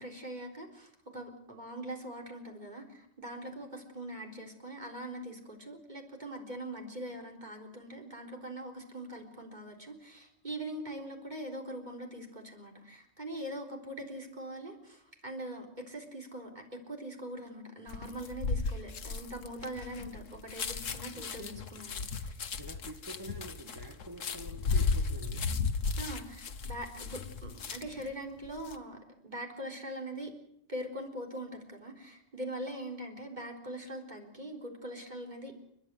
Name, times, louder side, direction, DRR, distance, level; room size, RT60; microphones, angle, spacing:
voice 1, 0.0-22.4 26.0-30.3 30.7-35.5, right 1 dB, 35° right, 2 dB, 4.2 m, -42 dB
sound 1, 17.9-28.1 28.4-28.8, left 4 dB, 85° left, 1.6 m, -35 dB
voice 2, 21.1-21.6 22.6-25.5, right 1 dB, 15° right, 3 dB, 1.8 m, -47 dB
30.0 x 12.0 x 9.4 m, 0.74 s
omnidirectional pair, 1.3 m